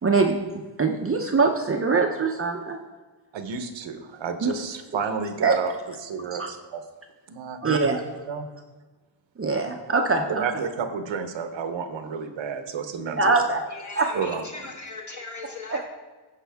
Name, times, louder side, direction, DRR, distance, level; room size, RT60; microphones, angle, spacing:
voice 1, 0.0-2.8 4.4-4.5 5.4-5.6 6.3-6.5 7.6-8.0 9.4-10.4 13.2-13.6 14.0-14.2 15.7-15.9, right 4 dB, 30° right, 3 dB, 0.7 m, -23 dB
voice 2, 3.3-5.7 6.0-6.8 7.3-7.8 8.3-8.5 10.4-13.3 14.1-14.4, right 6 dB, 75° right, 8 dB, 1.0 m, -31 dB
voice 3, 13.7-15.9, left 3 dB, 40° left, 0 dB, 2.0 m, -38 dB
15.0 x 5.4 x 3.5 m, 1.3 s
wide cardioid pair, 145°, 45 cm